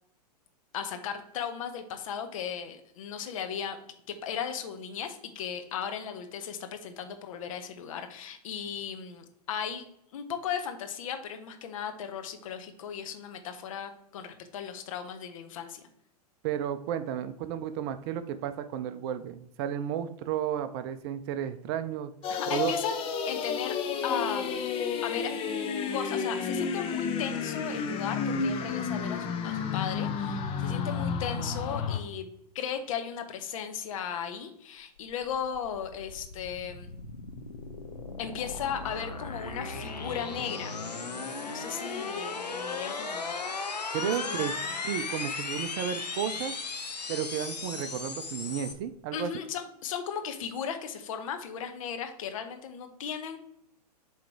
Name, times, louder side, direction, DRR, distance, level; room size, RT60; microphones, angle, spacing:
voice 1, 0.7-3.8 4.2-9.8 10.1-15.8 22.3-22.9 23.3-23.7 24.0-24.7 25.0-25.3 25.9-32.3 32.5-36.9 38.2-40.8 41.4-43.5 44.0-44.7 49.1-53.4, left 8 dB, 55° left, 7 dB, 1.0 m, -36 dB
voice 2, 16.4-22.1 22.5-22.7 43.9-44.6 44.8-46.5 47.1-49.3, right 9 dB, 40° right, 11 dB, 0.5 m, -33 dB
sound 1, 22.2-32.0, left 6 dB, 25° left, 0.8 m, -31 dB
sound 2, 35.0-48.7, left 4 dB, 85° left, 0.9 m, -37 dB
7.6 x 3.2 x 4.5 m, 0.74 s
figure-of-eight pair, 105°, 21 cm